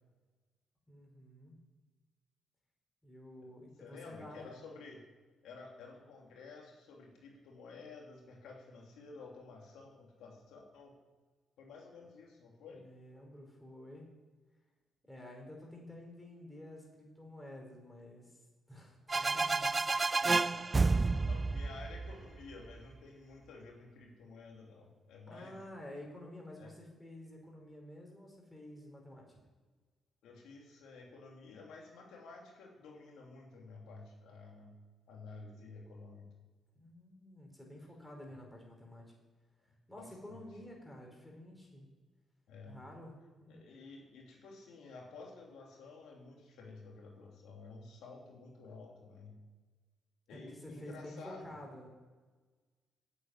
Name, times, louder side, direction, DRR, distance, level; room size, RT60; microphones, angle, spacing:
voice 1, 0.9-1.5 3.0-4.5 12.7-14.1 15.1-18.4 18.7-19.8 25.3-29.4 36.7-39.1 39.9-41.9 42.7-43.6 50.3-51.9, left 1 dB, 5° left, 0 dB, 4.7 m, -50 dB
voice 2, 3.8-5.0 5.4-10.9 11.6-12.8 19.8-19.9 20.2-25.6 26.6-26.7 30.2-34.7 35.1-36.3 40.0-40.4 42.5-42.8 43.5-49.4 50.3-51.4, left 3 dB, 80° left, -1 dB, 3.0 m, -52 dB
sound 1, 19.1-22.7, right 3 dB, 25° right, 0.4 m, -30 dB
9.9 x 8.7 x 9.7 m, 1.4 s
cardioid pair, 90°, 0 cm